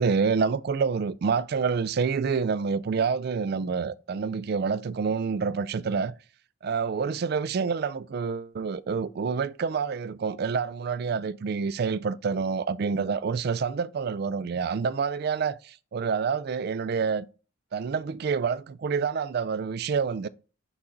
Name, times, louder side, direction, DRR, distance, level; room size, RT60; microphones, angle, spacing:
voice 1, 0.0-6.1 6.6-17.3 17.7-20.3, right 5 dB, 50° right, 0.3 m, -27 dB
6.0 x 3.9 x 4.4 m
head